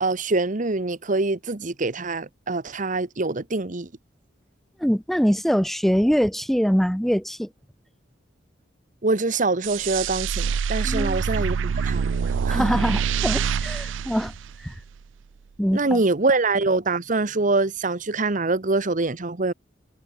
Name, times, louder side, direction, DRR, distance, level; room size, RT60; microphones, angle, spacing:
voice 1, 0.0-3.9 9.0-12.8 15.7-19.5, right 3 dB, 45° right, 1.1 m, -24 dB
voice 2, 4.8-7.5 10.8-11.2 12.5-14.3 14.6-14.7 15.6-16.0, equal, ahead, 0.9 m, -23 dB
sound 1, 9.6-15.0, right 6 dB, 80° right, 0.4 m, -26 dB
head